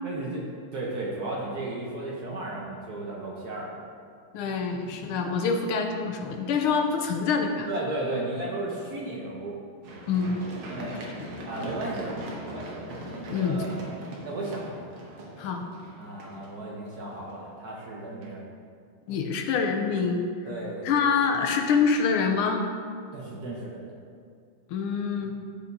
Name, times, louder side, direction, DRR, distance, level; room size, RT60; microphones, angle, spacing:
voice 1, 0.0-3.8 7.7-9.6 10.7-11.0 11.4-13.7 14.2-14.8 16.0-18.4 20.4-21.2 23.1-24.0, right 2 dB, 55° right, -3 dB, 1.2 m, -35 dB
voice 2, 4.3-7.7 10.1-10.4 11.2-11.3 13.3-13.6 15.4-15.6 19.1-20.2 20.8-22.7 24.7-25.3, left 5 dB, 80° left, 4 dB, 1.5 m, -25 dB
Run, 9.8-17.7 18.2-18.3, right 1 dB, 75° right, 1.8 m, -41 dB
12.0 x 5.0 x 2.7 m, 2.3 s
omnidirectional pair, 2.4 m